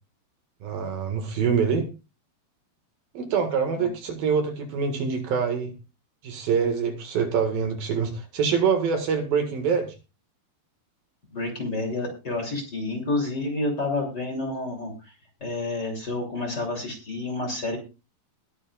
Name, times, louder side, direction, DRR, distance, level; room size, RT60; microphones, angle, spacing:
voice 1, 0.6-1.9 3.1-5.7 6.2-9.9, right 6 dB, 65° right, 6 dB, 3.4 m, -25 dB
voice 2, 11.3-15.1 15.4-17.8, left 2 dB, 25° left, 3 dB, 3.2 m, -29 dB
20.5 x 9.6 x 2.4 m, 0.30 s
omnidirectional pair, 4.6 m